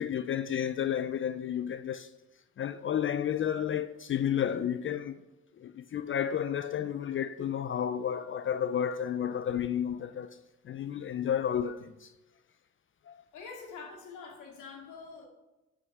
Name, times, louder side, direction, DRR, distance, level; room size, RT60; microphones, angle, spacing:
voice 1, 0.0-2.1 2.6-5.2 5.6-10.4 10.6-12.1 13.1-13.2, left 9 dB, 45° left, 0.4 m, -31 dB
voice 2, 13.3-15.3, left 5 dB, 80° left, 2.7 m, -45 dB
11.0 x 6.3 x 4.7 m
cardioid pair, 90°, 30 cm